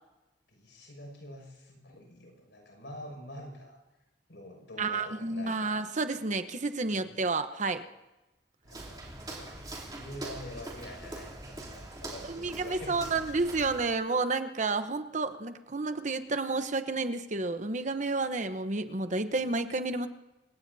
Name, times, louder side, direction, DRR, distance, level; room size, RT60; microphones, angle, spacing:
voice 1, 0.5-3.8 4.3-5.8 6.9-7.3 8.6-13.2, left 1 dB, 85° left, 1 dB, 6.4 m, -46 dB
voice 2, 4.8-7.8 12.3-20.1, right 3 dB, 45° right, 9 dB, 1.0 m, -30 dB
Walk footsteps, 8.6-13.9, right 2 dB, 25° right, 3.2 m, -43 dB
28.0 x 17.0 x 2.8 m, 1.0 s
head